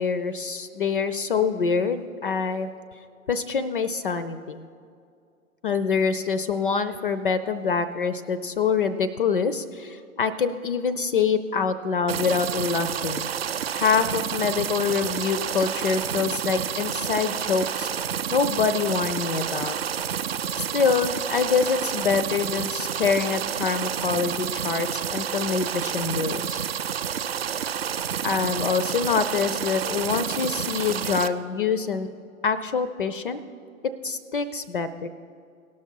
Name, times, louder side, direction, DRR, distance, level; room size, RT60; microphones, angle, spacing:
voice 1, 0.0-2.7 3.3-4.6 5.6-13.3 13.7-17.9 18.3-19.8 20.6-26.7 28.2-32.1 32.4-33.4 34.0-35.1, left 5 dB, 40° left, 13 dB, 0.4 m, -25 dB
sound 1, 12.1-31.3, right 8 dB, 45° right, 0.5 m, -29 dB
17.5 x 6.0 x 4.5 m, 2.4 s
figure-of-eight pair, 120°, 42 cm